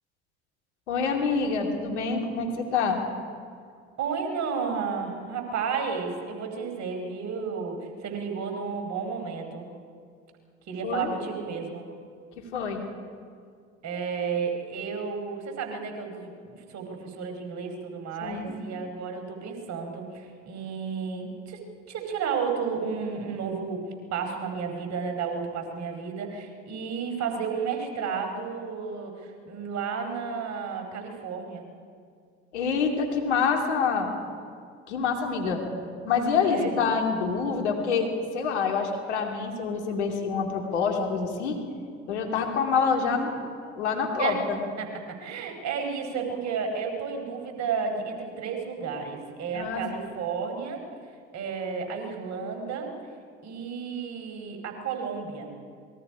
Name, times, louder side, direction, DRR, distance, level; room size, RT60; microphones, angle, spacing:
voice 1, 0.9-3.0 10.8-11.1 12.4-12.8 18.2-18.6 32.5-34.1 34.9-35.6 36.0-41.6 42.1-43.3 43.7-44.6 49.5-49.8, left 5 dB, 80° left, 2 dB, 2.8 m, -26 dB
voice 2, 4.0-9.7 10.7-11.9 13.8-21.6 21.9-23.8 24.1-31.6 36.4-36.8 44.2-44.5 44.8-50.8 51.3-52.9 53.4-55.5, right 5 dB, 55° right, 3 dB, 4.5 m, -32 dB
27.0 x 21.5 x 5.0 m, 2.2 s
hypercardioid pair, 60°, 34 cm